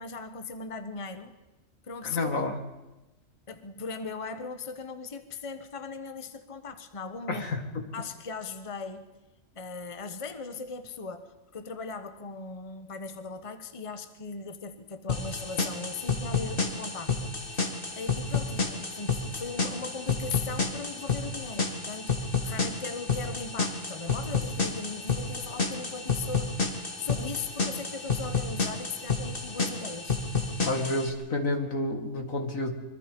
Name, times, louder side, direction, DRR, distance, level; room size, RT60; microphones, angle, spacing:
voice 1, 0.0-1.4 1.8-2.3 3.5-7.4 7.9-9.0 9.5-26.5 27.0-30.2, left 4 dB, 25° left, 9 dB, 1.2 m, -39 dB
voice 2, 2.0-2.6 7.3-7.9 30.6-32.8, left 2 dB, 80° left, 5 dB, 2.7 m, -30 dB
sound 1, 15.1-31.1, left 4 dB, 40° left, 2.3 m, -30 dB
24.0 x 24.0 x 5.3 m, 1.0 s
omnidirectional pair, 1.4 m